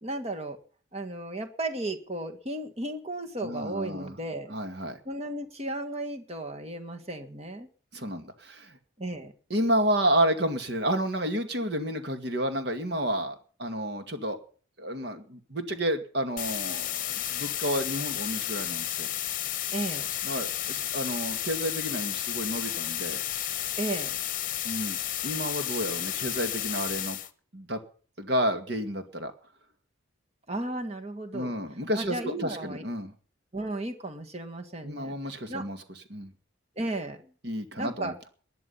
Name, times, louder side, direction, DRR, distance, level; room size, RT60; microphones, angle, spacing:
voice 1, 0.0-0.6 0.9-4.6 5.1-7.7 9.0-9.3 19.7-20.1 23.8-24.2 30.5-31.5 31.9-32.8 33.5-35.1 35.5-35.6 36.8-37.2 37.8-38.1, right 2 dB, 30° right, 5 dB, 1.8 m, -34 dB
voice 2, 3.4-4.2 4.5-5.0 7.9-8.8 9.5-14.4 14.8-19.1 20.2-23.2 24.6-25.0 25.2-27.2 27.5-27.8 28.2-29.3 31.3-33.1 34.8-35.8 36.1-36.3 37.4-38.3, equal, 55° right, 7 dB, 2.2 m, -30 dB
sound 1, 16.4-27.3, left 12 dB, 40° left, 1.1 m, -32 dB
20.0 x 10.5 x 5.7 m, 0.43 s
head